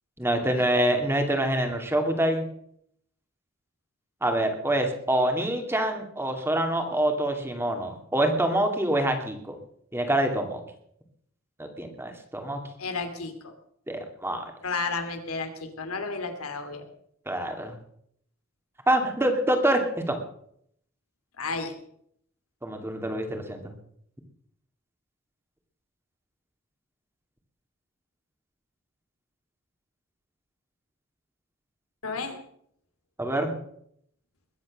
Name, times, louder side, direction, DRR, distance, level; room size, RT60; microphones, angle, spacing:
voice 1, 0.2-2.4 4.2-9.6 9.9-10.6 11.6-12.6 13.9-14.4 17.3-17.8 18.9-20.2 22.6-23.7 33.2-33.5, right 1 dB, 10° right, 5 dB, 2.4 m, -26 dB
voice 2, 12.8-13.5 14.6-16.9 21.4-21.8 32.0-32.4, left 4 dB, 85° left, 7 dB, 2.7 m, -32 dB
21.5 x 8.5 x 6.5 m, 0.68 s
head